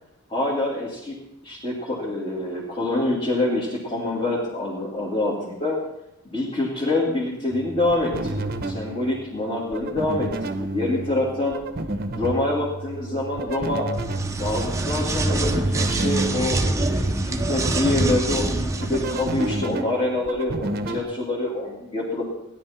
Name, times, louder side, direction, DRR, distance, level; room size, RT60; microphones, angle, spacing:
voice 1, 0.3-1.2 1.4-5.8 6.2-11.5 12.1-13.9 14.4-22.2, left 2 dB, 25° left, -6 dB, 2.7 m, -26 dB
sound 1, 7.5-21.0, right 2 dB, 45° right, 0.9 m, -31 dB
sound 2, 14.0-19.7, right 2 dB, 15° right, 0.8 m, -25 dB
17.0 x 11.0 x 4.4 m, 0.87 s
head